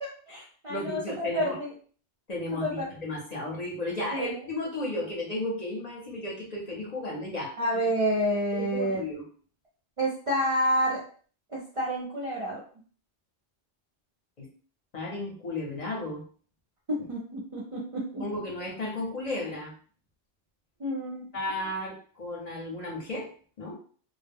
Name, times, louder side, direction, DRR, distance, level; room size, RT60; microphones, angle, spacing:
voice 1, 0.0-1.7 2.6-2.9 4.1-4.5 7.6-9.1 10.0-11.0 11.5-12.6 16.9-18.2 20.8-21.4, equal, 45° right, -4 dB, 0.4 m, -29 dB
voice 2, 0.7-1.6 2.3-7.6 8.5-9.2 14.4-14.5 14.9-16.2 18.2-19.7 21.3-23.3 23.6-23.7, left 2 dB, 45° left, -2 dB, 0.7 m, -34 dB
2.1 x 2.0 x 3.4 m, 0.44 s
omnidirectional pair, 1.1 m